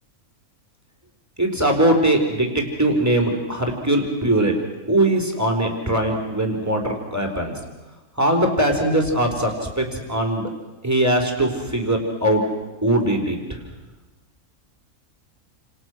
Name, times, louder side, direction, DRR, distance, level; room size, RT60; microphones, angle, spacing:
voice 1, 1.4-4.5 4.9-7.5 8.2-10.5 10.8-12.4 12.8-13.4, right 1 dB, 10° right, 2 dB, 4.2 m, -21 dB
30.0 x 28.0 x 6.3 m, 1.1 s
omnidirectional pair, 1.6 m